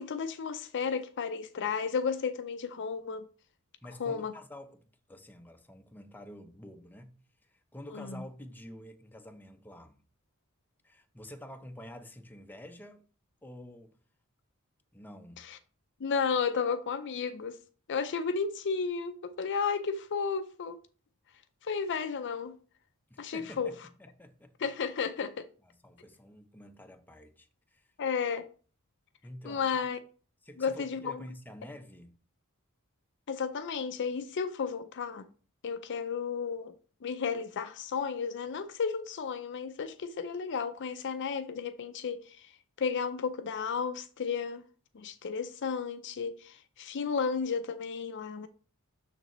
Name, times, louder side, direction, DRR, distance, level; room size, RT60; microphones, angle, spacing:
voice 1, 0.0-3.2 4.0-4.3 7.9-8.2 15.4-15.6 16.0-17.6 17.9-20.8 21.6-22.6 23.2-23.7 24.6-25.5 28.0-28.5 29.4-30.0 30.6-31.2 33.3-35.3 35.6-36.7 37.0-42.2 42.8-44.6 44.9-48.5, left 5 dB, 55° left, 0.5 m, -33 dB
voice 2, 3.8-7.2 7.4-10.0 10.8-13.1 13.4-13.9 14.9-15.4 23.1-24.7 25.6-27.9 29.2-29.9 30.4-32.1, left 1 dB, 10° left, 0.6 m, -49 dB
6.7 x 6.6 x 3.0 m
head